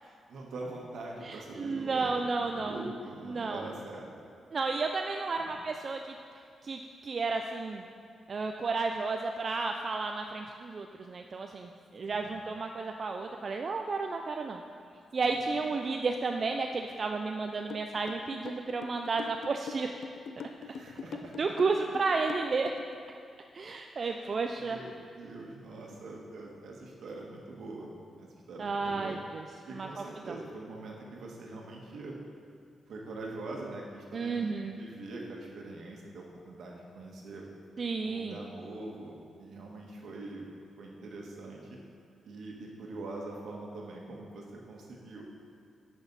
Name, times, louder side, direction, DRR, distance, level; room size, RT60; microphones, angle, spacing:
voice 1, 0.0-4.1 5.4-5.6 12.1-12.3 20.6-21.3 24.0-24.2 24.6-27.9 28.2-29.2 29.6-32.2 32.9-37.5 38.0-40.5 40.8-41.8 42.2-45.2, right 2 dB, 75° right, -1 dB, 1.4 m, -43 dB
voice 2, 1.2-2.9 3.3-3.6 4.5-6.2 6.6-7.8 8.3-14.6 15.1-19.9 21.4-22.7 23.5-24.8 28.6-29.4 29.7-30.3 34.1-34.8 37.8-38.4, right 4 dB, 45° right, 3 dB, 0.4 m, -32 dB
sound 1, 17.7-23.0, left 6 dB, 70° left, 0.5 m, -42 dB
10.5 x 6.1 x 4.0 m, 2.3 s
cardioid pair, 105°, 0 cm